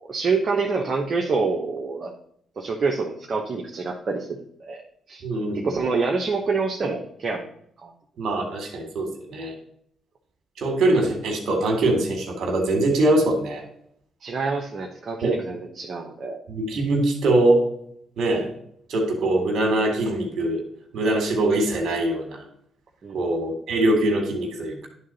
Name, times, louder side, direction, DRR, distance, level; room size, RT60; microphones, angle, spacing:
voice 1, 0.1-2.1 2.6-4.8 5.1-5.2 5.5-7.4 7.8-7.9 14.2-16.4 23.0-23.2, right 4 dB, 50° right, 0 dB, 1.1 m, -26 dB
voice 2, 5.2-5.8 8.2-9.5 10.6-13.6 15.2-15.3 16.5-17.7 18.2-18.5 18.9-20.6 20.9-22.4 23.1-24.9, right 1 dB, 70° right, 3 dB, 2.0 m, -22 dB
10.5 x 3.8 x 4.2 m, 0.68 s
supercardioid pair, 55°, 0 cm